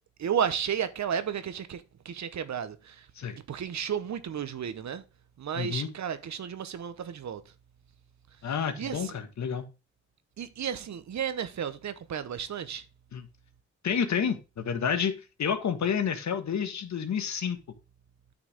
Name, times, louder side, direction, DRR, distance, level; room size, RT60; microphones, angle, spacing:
voice 1, 0.2-3.1 3.5-5.0 5.4-7.5 8.4-9.2 10.4-12.8, right 8 dB, 70° right, 1.0 m, -33 dB
voice 2, 5.6-5.9 8.4-9.7 13.1-13.2 13.8-17.6, left 7 dB, 70° left, 1.6 m, -29 dB
9.2 x 6.1 x 3.5 m
cardioid pair, 80°, 29 cm